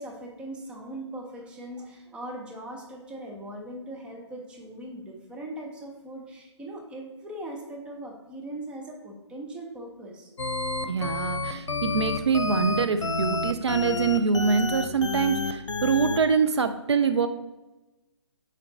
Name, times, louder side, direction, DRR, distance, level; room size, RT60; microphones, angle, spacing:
voice 1, 0.0-10.3, right 1 dB, 5° right, 0 dB, 0.6 m, -40 dB
sound 1, 10.4-16.2, left 3 dB, 80° left, 0.7 m, -29 dB
voice 2, 10.8-17.3, right 5 dB, 65° right, 9 dB, 0.5 m, -24 dB
5.9 x 4.4 x 3.8 m, 1.1 s
figure-of-eight pair, 140°, 15 cm